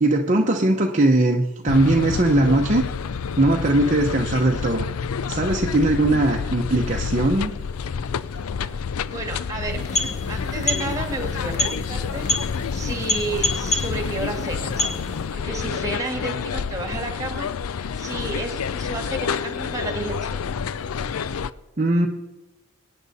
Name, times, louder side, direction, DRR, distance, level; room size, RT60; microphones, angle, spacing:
voice 1, 0.0-2.8 3.4-4.9 5.3-7.5 21.8-22.1, right 2 dB, 35° right, 1 dB, 0.8 m, -20 dB
sound 1, 1.7-21.5, left 6 dB, 85° left, 0.5 m, -28 dB
voice 2, 9.1-12.2 12.7-14.9 15.3-17.5 18.0-20.4, right 2 dB, 15° right, 4 dB, 2.0 m, -32 dB
sound 2, 9.6-15.4, left 2 dB, 35° left, 1.2 m, -28 dB
22.5 x 9.5 x 4.1 m, 1.1 s
head